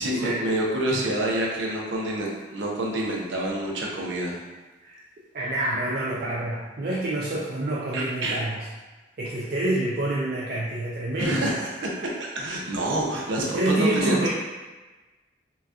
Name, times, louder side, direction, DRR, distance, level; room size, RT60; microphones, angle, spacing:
voice 1, 0.0-4.4 7.9-8.4 11.2-14.3, right 1 dB, 85° right, -2 dB, 0.7 m, -27 dB
voice 2, 5.3-8.6 9.2-11.5 13.4-14.3, right 1 dB, 50° right, -6 dB, 0.4 m, -27 dB
3.9 x 2.3 x 2.4 m, 1.2 s
head